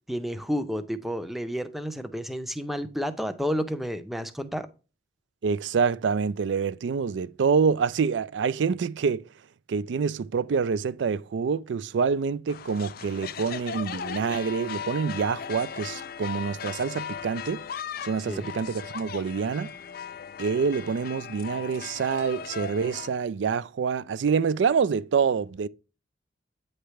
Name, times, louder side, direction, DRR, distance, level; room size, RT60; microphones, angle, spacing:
voice 1, 0.1-4.7 18.3-18.5, equal, ahead, 0.5 m, -31 dB
voice 2, 5.4-9.2 9.7-17.6 18.0-19.7 20.4-25.7, right 5 dB, 85° right, 0.4 m, -26 dB
sound 1, 12.5-23.1, left 7 dB, 55° left, 0.4 m, -38 dB
8.8 x 3.3 x 5.6 m
head